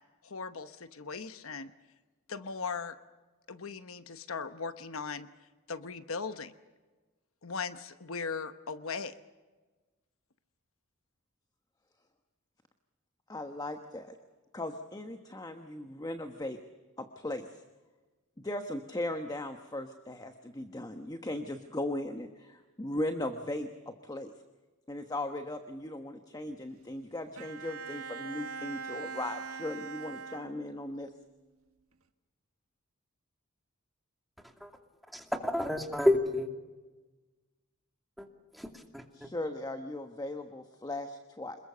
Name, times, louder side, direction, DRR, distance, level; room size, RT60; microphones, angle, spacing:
voice 1, 0.2-1.7 2.3-3.0 3.5-5.3 5.7-6.5 7.4-9.1, left 5 dB, 70° left, 11 dB, 1.0 m, -38 dB
voice 2, 13.3-14.2 14.5-16.6 17.0-17.6 18.4-24.3 24.9-31.1 39.1-41.6, left 1 dB, 20° left, 7 dB, 1.2 m, -38 dB
Bowed string instrument, 27.4-31.0, right 5 dB, 80° right, 1.6 m, -42 dB
voice 3, 35.1-36.5 38.2-38.3 38.5-39.3, left 1 dB, ahead, 3 dB, 2.4 m, -30 dB
27.0 x 21.5 x 6.8 m, 1.2 s
head